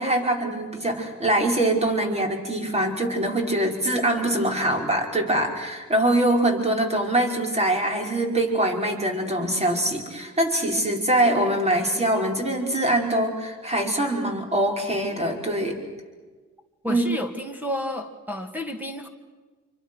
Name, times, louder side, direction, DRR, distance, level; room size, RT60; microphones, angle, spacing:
voice 1, 0.0-15.8 16.9-17.0, right 1 dB, 20° right, 2 dB, 5.5 m, -23 dB
voice 2, 16.8-19.1, left 1 dB, 5° right, 5 dB, 2.4 m, -31 dB
28.0 x 24.5 x 6.5 m, 1.4 s
cardioid pair, 90°, 30 cm